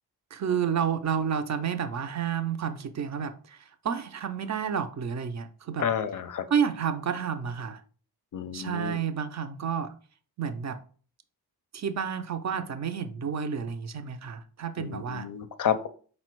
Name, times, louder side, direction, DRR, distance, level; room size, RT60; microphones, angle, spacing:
voice 1, 0.3-5.9 6.5-7.8 8.5-9.9 10.4-10.8 11.7-15.3, right 7 dB, 45° right, 9 dB, 0.4 m, -30 dB
voice 2, 5.8-6.5 8.3-9.0 14.8-15.9, left 8 dB, 55° left, 11 dB, 0.4 m, -30 dB
4.7 x 2.1 x 4.4 m, 0.42 s
wide cardioid pair, 135°, 39 cm